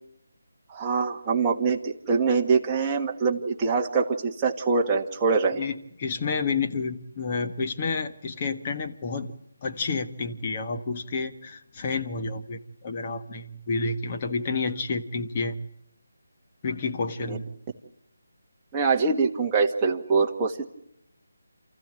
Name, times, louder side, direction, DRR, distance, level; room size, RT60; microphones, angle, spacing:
voice 1, 0.7-5.6 17.3-17.4 18.7-20.6, right 4 dB, 15° right, 0 dB, 1.6 m, -24 dB
voice 2, 5.5-9.3 9.6-15.6 16.6-17.4, left 4 dB, 25° left, 5 dB, 1.4 m, -30 dB
28.5 x 15.0 x 9.0 m, 0.79 s
figure-of-eight pair, 170°, 0 cm